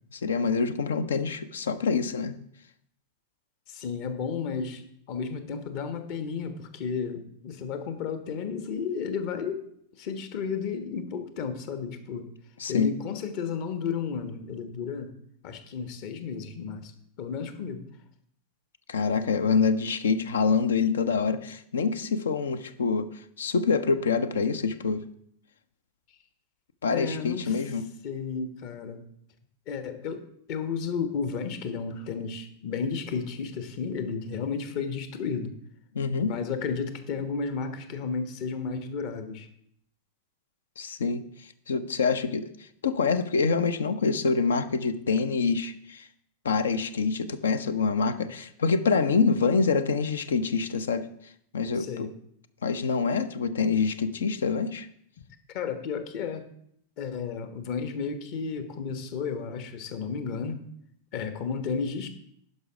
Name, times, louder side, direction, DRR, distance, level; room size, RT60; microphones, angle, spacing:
voice 1, 0.1-2.4 12.6-12.9 18.9-23.1 23.4-25.0 26.8-27.8 35.9-36.3 40.8-41.2 41.7-42.5 42.8-46.1 46.4-51.1 51.5-52.1 52.6-54.9, left 5 dB, 65° left, 13 dB, 0.6 m, -26 dB
voice 2, 3.7-4.8 5.1-9.6 9.9-12.3 12.7-15.1 15.4-16.9 17.2-17.9 26.9-27.6 28.0-29.0 29.7-30.2 30.5-35.5 36.2-39.5 51.7-52.1 55.5-56.4 57.0-60.6 61.1-62.1, left 5 dB, 45° left, 9 dB, 1.1 m, -33 dB
11.0 x 5.5 x 4.9 m, 0.69 s
figure-of-eight pair, 90°, 0 cm